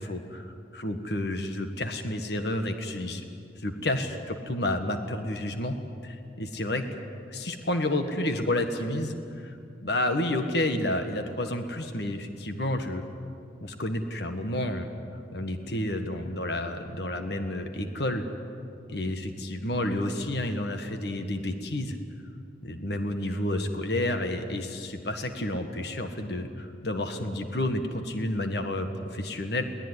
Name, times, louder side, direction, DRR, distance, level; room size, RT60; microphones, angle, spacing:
voice 1, 0.0-3.2 3.6-5.8 6.0-6.8 7.3-9.6 9.8-13.0 13.6-14.9 15.3-18.2 18.9-22.0 22.6-29.6, left 1 dB, 65° left, 6 dB, 1.7 m, -30 dB
22.0 x 18.5 x 9.9 m, 2.4 s
head